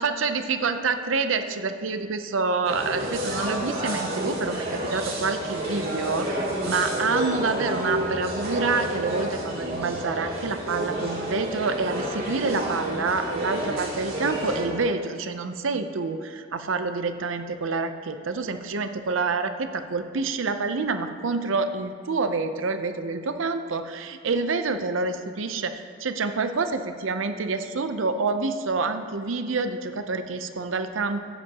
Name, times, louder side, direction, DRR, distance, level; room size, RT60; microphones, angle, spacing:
voice 1, 0.0-31.2, right 4 dB, 90° right, 9 dB, 0.6 m, -27 dB
sound 1, 2.6-14.6, right 1 dB, 50° right, 2.7 m, -30 dB
15.0 x 9.9 x 2.9 m, 2.3 s
head